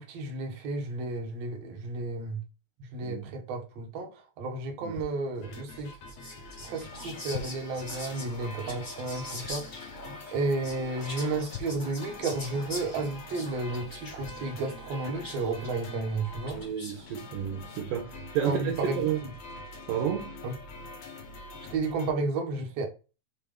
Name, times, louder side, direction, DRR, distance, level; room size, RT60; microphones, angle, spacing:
voice 1, 0.0-2.4 2.8-5.9 6.6-9.6 10.3-16.6 18.4-19.3 20.4-20.6 21.7-22.9, right 3 dB, 50° right, 2.1 m, -32 dB
sound 1, 4.9-5.1 6.5-6.6 7.3-7.6 9.4-9.7 11.5-11.9 14.2-14.4 15.5-15.6 16.3-16.5, left 7 dB, 90° left, 3.0 m, -42 dB
sound 2, 5.4-22.1, left 2 dB, 60° left, 2.0 m, -45 dB
Whispering, 5.8-17.2, left 1 dB, 20° left, 1.4 m, -44 dB
voice 2, 16.5-19.2 19.9-20.3, right 9 dB, 75° right, 2.3 m, -31 dB
7.5 x 3.0 x 5.2 m
omnidirectional pair, 4.5 m